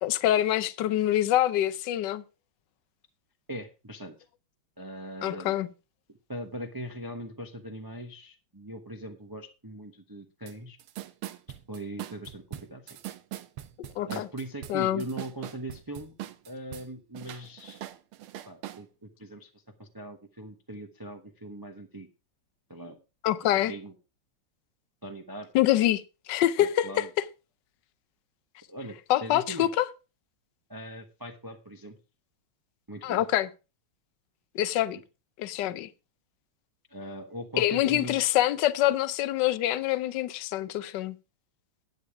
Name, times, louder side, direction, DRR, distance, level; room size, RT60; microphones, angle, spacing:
voice 1, 0.0-2.2 5.2-5.7 13.8-14.3 14.7-15.0 23.2-23.7 25.5-26.0 26.3-27.0 29.1-29.9 33.0-33.5 34.5-35.0 35.4-35.9 37.6-41.2, left 13 dB, 65° left, 1.2 m, -25 dB
voice 2, 3.5-4.2 4.8-5.5 6.1-10.8 11.7-13.0 14.1-16.1 16.5-17.9 18.5-22.1 22.7-23.0 23.5-23.9 25.0-25.5 26.6-27.1 28.7-29.7 30.7-32.0 32.9-33.2 34.9-35.0 36.9-38.2, right 1 dB, 25° right, 0.5 m, -40 dB
sound 1, 10.5-10.6 10.8-16.9 17.1-18.8, right 13 dB, 90° right, 1.7 m, -41 dB
11.0 x 8.8 x 4.7 m
omnidirectional pair, 2.3 m